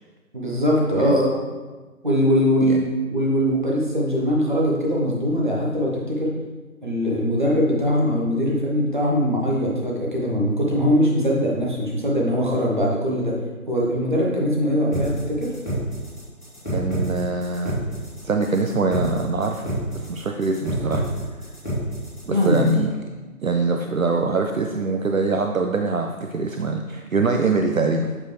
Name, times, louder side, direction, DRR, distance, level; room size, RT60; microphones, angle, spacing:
voice 1, 0.3-1.4 2.0-2.8 3.1-6.3 6.8-13.3 13.7-15.5 22.3-22.6, equal, 35° right, -3 dB, 1.1 m, -21 dB
sound 1, 14.9-22.9, right 1 dB, 5° right, 1.4 m, -28 dB
voice 2, 16.7-17.8 18.2-21.0 22.3-23.0 23.4-28.1, right 3 dB, 65° right, 4 dB, 0.5 m, -23 dB
7.2 x 4.6 x 3.2 m, 1.3 s
figure-of-eight pair, 165°, 45 cm